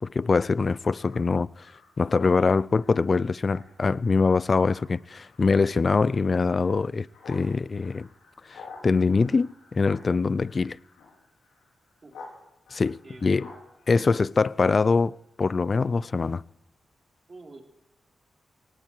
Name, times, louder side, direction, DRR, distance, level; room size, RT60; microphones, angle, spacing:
voice 1, 0.0-1.7 2.0-8.1 8.5-10.8 12.7-13.5 13.9-16.4, left 4 dB, 50° left, 0.5 m, -24 dB
Speech synthesizer, 1.0-12.4 12.7-14.9, left 4 dB, 90° left, 5.0 m, -51 dB
voice 2, 13.0-13.6 17.3-17.6, right 3 dB, 45° right, 3.7 m, -48 dB
18.5 x 16.0 x 4.7 m
supercardioid pair, 45°, 0 cm